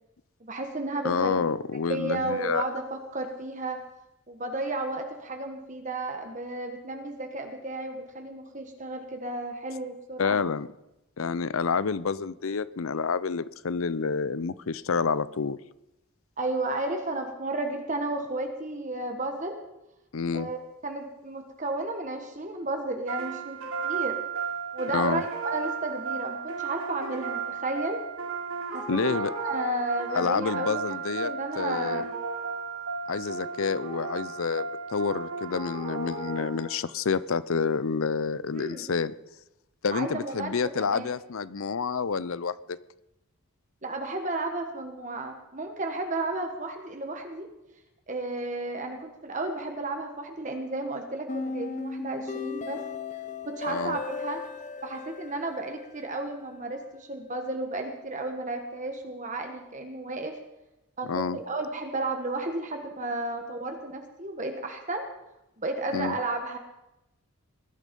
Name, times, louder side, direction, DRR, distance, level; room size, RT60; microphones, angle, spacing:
voice 1, 0.4-1.5 1.9-3.8 4.3-10.4 16.4-19.6 20.3-20.6 20.8-23.6 23.8-24.2 24.7-28.0 28.7-32.1 38.5-38.8 39.9-41.1 43.8-47.5 48.1-52.8 53.4-54.4 54.8-60.4 61.0-65.0 65.6-66.6, right 2 dB, 35° right, 4 dB, 1.4 m, -33 dB
voice 2, 1.0-2.6 10.2-10.7 11.2-15.6 20.1-20.5 24.9-25.2 28.9-29.3 30.1-31.3 31.6-32.0 33.1-39.1 39.8-42.8 53.7-54.0 61.1-61.4 65.9-66.2, left 5 dB, 70° left, 18 dB, 0.6 m, -28 dB
sound 1, 23.1-36.9, right 5 dB, 70° right, 3.4 m, -34 dB
sound 2, 51.3-56.3, left 4 dB, 35° left, 0.8 m, -36 dB
20.0 x 12.0 x 5.4 m, 0.92 s
head